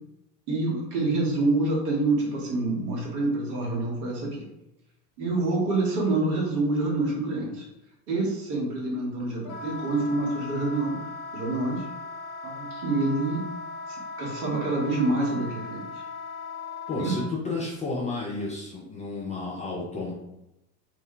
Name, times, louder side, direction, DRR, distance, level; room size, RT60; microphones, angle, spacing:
voice 1, 0.5-4.5 5.2-7.7 8.1-11.0 11.3-11.9 12.4-13.5 13.9-15.8 17.0-17.2, right 2 dB, 65° right, -3 dB, 1.2 m, -27 dB
Wind instrument woodwind instrument, 9.4-17.3, left 3 dB, 60° left, 0.6 m, -38 dB
voice 2, 16.9-20.1, left 3 dB, 15° left, -5 dB, 0.4 m, -32 dB
2.5 x 2.1 x 3.7 m, 0.88 s
hypercardioid pair, 80°, 48 cm